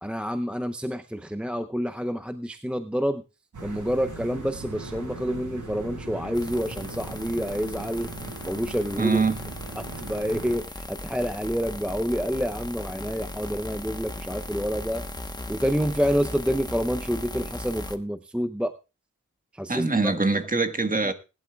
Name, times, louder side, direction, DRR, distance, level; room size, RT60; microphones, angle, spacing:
voice 1, 0.0-3.2 3.6-8.1 8.5-9.2 9.8-15.0 15.5-18.7 19.5-20.1 21.0-21.1, equal, 5° right, 0.6 m, -28 dB
sound 1, 3.5-10.6, right 3 dB, 70° right, 7.4 m, -39 dB
sound 2, 6.3-18.0, left 1 dB, 15° left, 1.1 m, -37 dB
voice 2, 9.0-9.4 19.7-21.1, right 3 dB, 25° right, 1.4 m, -23 dB
20.0 x 11.0 x 2.3 m
wide cardioid pair, 85°, 31 cm